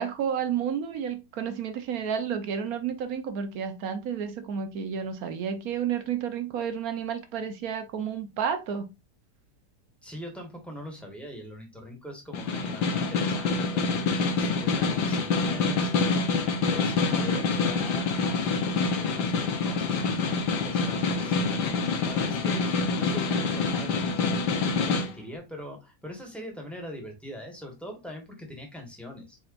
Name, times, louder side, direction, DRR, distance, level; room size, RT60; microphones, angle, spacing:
voice 1, 0.0-8.9 17.1-17.4, right 7 dB, 65° right, 1.2 m, -31 dB
voice 2, 10.0-21.7 22.0-29.4, left 1 dB, ahead, 1.3 m, -42 dB
Snare drum, 12.3-25.1, left 4 dB, 80° left, 1.5 m, -26 dB
4.3 x 4.3 x 2.5 m
omnidirectional pair, 1.8 m